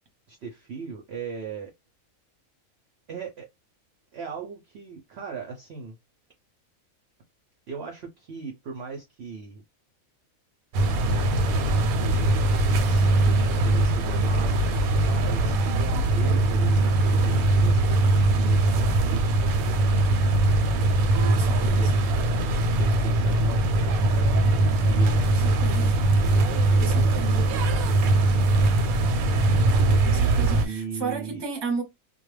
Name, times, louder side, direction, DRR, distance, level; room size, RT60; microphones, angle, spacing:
voice 1, 0.3-1.7 3.1-3.5 4.1-6.0 7.7-9.6 11.0-12.0 12.8-17.8 18.3-19.3 21.1-23.7 24.6-25.4 26.2-29.0 30.6-31.4, right 5 dB, 60° right, 0.7 m, -38 dB
sound 1, 10.7-30.7, right 2 dB, 85° right, 1.0 m, -21 dB
voice 2, 21.3-22.0 25.3-26.0 26.8-27.4 30.0-31.8, right 4 dB, 25° right, 0.7 m, -34 dB
2.3 x 2.1 x 3.1 m
omnidirectional pair, 1.5 m